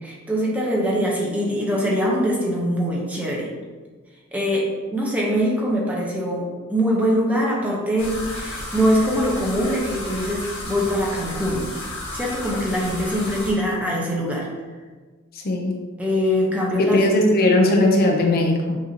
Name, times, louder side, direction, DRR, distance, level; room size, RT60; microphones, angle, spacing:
voice 1, 0.0-3.5 4.3-11.6 12.1-14.5 16.0-17.0, equal, 5° right, -4 dB, 0.7 m, -23 dB
sound 1, 8.0-13.5, left 1 dB, 70° left, 1.4 m, -33 dB
voice 2, 15.3-15.8 16.8-18.8, left 1 dB, 45° left, 1 dB, 0.5 m, -18 dB
6.1 x 2.7 x 2.8 m, 1.4 s
head